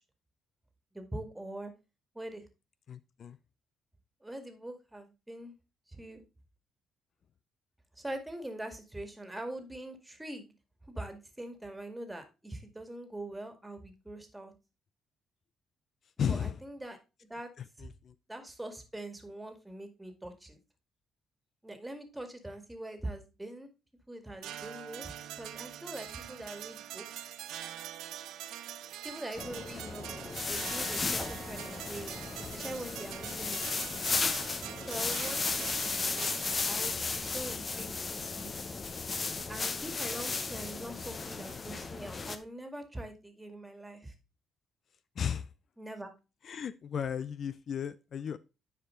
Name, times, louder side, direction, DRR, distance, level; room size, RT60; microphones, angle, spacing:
voice 1, 0.9-1.7 2.1-2.4 4.2-5.5 5.9-6.2 8.0-10.5 10.9-14.5 16.3-17.5 17.8-17.9 18.3-20.6 21.6-23.7 24.1-27.0 29.0-32.2 32.5-33.7 34.9-36.3 36.7-38.5 39.5-44.1 45.8-46.1, right 1 dB, 10° right, 2.0 m, -43 dB
voice 2, 2.9-3.4 16.2-16.6 17.6-18.1 45.2-45.5 46.4-48.4, left 8 dB, 55° left, 0.4 m, -35 dB
sound 1, 24.4-36.9, right 11 dB, 85° right, 0.7 m, -44 dB
sound 2, 29.4-42.4, left 4 dB, 35° left, 0.9 m, -35 dB
9.8 x 4.7 x 3.7 m
cardioid pair, 90°, 0 cm